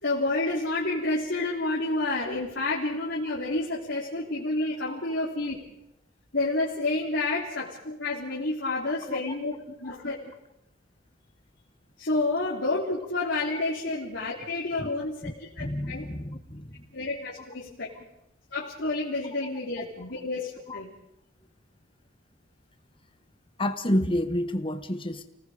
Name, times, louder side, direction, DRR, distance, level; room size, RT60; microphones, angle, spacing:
voice 1, 0.0-5.6 6.3-9.5 9.8-10.2 12.0-16.0 16.9-17.9 18.5-20.9, left 2 dB, 60° left, -5 dB, 3.5 m, -29 dB
voice 2, 15.6-16.9 20.7-20.8 23.6-25.2, left 1 dB, 25° left, 8 dB, 1.4 m, -30 dB
30.0 x 19.0 x 5.1 m, 0.80 s
head